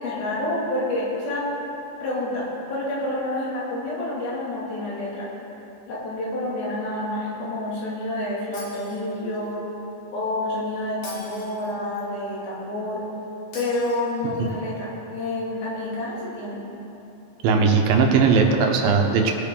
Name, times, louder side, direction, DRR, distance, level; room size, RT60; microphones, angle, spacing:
voice 1, 0.0-1.5 2.0-5.3 5.9-9.6 10.1-13.0 13.5-16.6, left 1 dB, 90° left, -6 dB, 4.5 m, -28 dB
Shatter, 8.5-9.5 11.0-12.0 13.5-14.5, left 2 dB, 55° left, 3.6 m, -44 dB
voice 2, 17.4-19.3, right 5 dB, 80° right, 3 dB, 2.7 m, -18 dB
19.5 x 8.7 x 3.8 m, 3.0 s
omnidirectional pair, 4.1 m